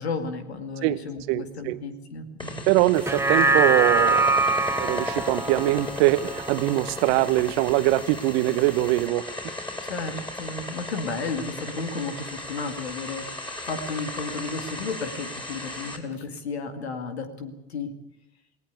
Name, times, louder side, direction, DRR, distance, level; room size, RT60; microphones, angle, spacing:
voice 1, 0.0-2.7 9.8-13.2 13.7-17.9, left 4 dB, 90° left, 8 dB, 2.4 m, -33 dB
voice 2, 1.3-1.8 2.7-4.5 4.8-9.3, right 17 dB, 75° right, 15 dB, 1.1 m, -23 dB
sound 1, 2.4-16.0, left 2 dB, 15° left, 6.0 m, -36 dB
sound 2, 2.9-7.5 7.9-8.0, right 2 dB, 10° right, 1.0 m, -24 dB
19.0 x 19.0 x 8.4 m, 0.87 s
hypercardioid pair, 55°, 31 cm